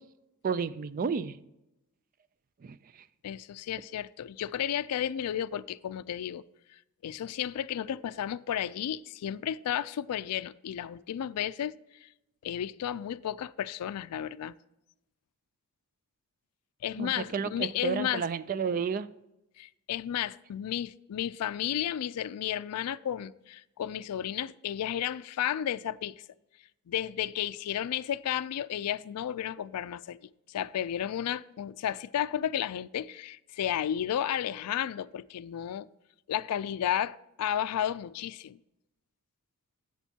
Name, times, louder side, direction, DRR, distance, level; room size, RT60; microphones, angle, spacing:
voice 1, 0.4-1.4 2.6-2.8 17.0-19.1, right 6 dB, 40° right, 0.3 m, -31 dB
voice 2, 3.2-6.4 7.0-11.7 12.0-12.1 12.4-14.5 16.8-18.3 19.6-26.2 26.9-35.9 36.3-38.6, left 10 dB, 90° left, 0.3 m, -33 dB
11.5 x 8.1 x 2.8 m
head